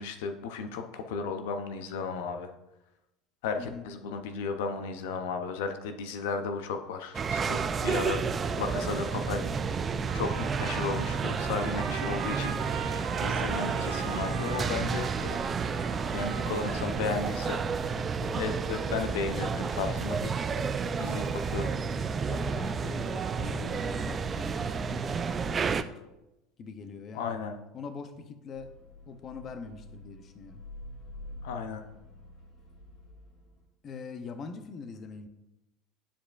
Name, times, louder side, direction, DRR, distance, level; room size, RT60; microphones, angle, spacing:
voice 1, 0.0-2.5 3.4-9.4 10.1-15.4 16.1-17.6 18.4-20.3 21.0-21.7 27.1-27.6 31.4-31.8, left 5 dB, 85° left, 7 dB, 0.6 m, -34 dB
sound 1, 7.1-25.8, right 5 dB, 30° right, 0.3 m, -31 dB
voice 2, 9.2-10.0 18.2-18.4 22.3-25.9 26.6-27.4 27.7-28.7 29.1-30.6 33.8-35.3, left 5 dB, 40° left, 9 dB, 0.6 m, -43 dB
Trumpet, 10.1-17.2, right 7 dB, 65° right, 0.9 m, -39 dB
sound 2, 28.5-33.6, left 1 dB, 55° left, 2.4 m, -47 dB
9.9 x 4.8 x 2.4 m, 0.95 s
supercardioid pair, 115°, 0 cm